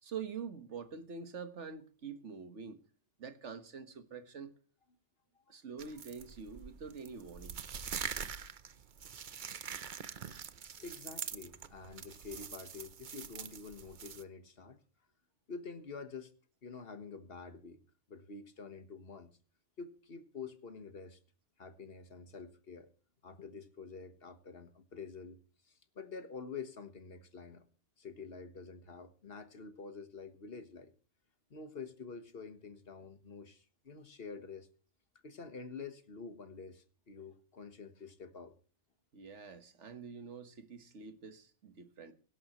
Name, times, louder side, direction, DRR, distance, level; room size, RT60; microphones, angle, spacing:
voice 1, 0.0-2.8 3.2-4.5 5.5-7.6 39.1-42.1, right 6 dB, 80° right, 1.7 m, -46 dB
sound 1, 5.8-14.2, right 7 dB, 50° right, 0.8 m, -44 dB
voice 2, 10.8-14.8 15.5-16.3 16.6-17.8 18.1-19.3 19.8-21.2 21.6-22.9 23.2-27.7 28.0-30.9 31.5-34.7 35.2-38.5, left 5 dB, 55° left, 1.6 m, -48 dB
24.0 x 11.0 x 3.0 m
omnidirectional pair, 1.2 m